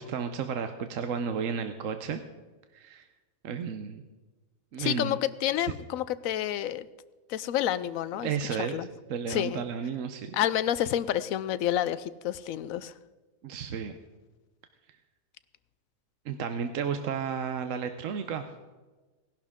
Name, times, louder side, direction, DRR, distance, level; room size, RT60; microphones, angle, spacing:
voice 1, 0.0-2.2 2.7-3.1 3.4-4.0 4.7-5.2 5.6-5.7 8.2-10.4 13.4-14.0 16.2-18.5, right 6 dB, 75° right, 8 dB, 1.1 m, -33 dB
voice 2, 4.8-6.9 7.3-8.9 9.3-9.6 10.3-12.9, left 11 dB, 85° left, 16 dB, 1.0 m, -29 dB
17.5 x 11.5 x 3.6 m, 1.2 s
omnidirectional pair, 1.4 m